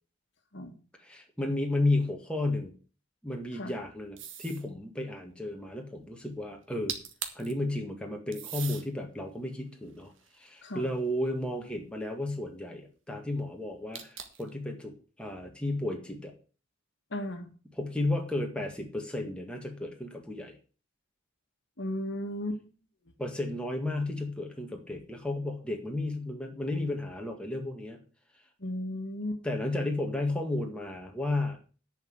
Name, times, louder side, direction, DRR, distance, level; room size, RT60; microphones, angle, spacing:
voice 1, 1.0-2.7 3.2-7.0 7.4-16.3 17.8-20.6 23.2-28.0 29.4-31.6, left 2 dB, 5° left, 1 dB, 1.8 m, -33 dB
sound 1, 4.2-4.7 6.6-6.7 6.9-7.5 8.3-8.9 9.5-11.0 13.9-14.5, right 8 dB, 60° right, 1.8 m, -40 dB
voice 2, 17.1-17.5 21.8-22.6 28.6-29.4, left 1 dB, 55° left, 6 dB, 1.7 m, -35 dB
10.5 x 5.8 x 7.9 m, 0.37 s
head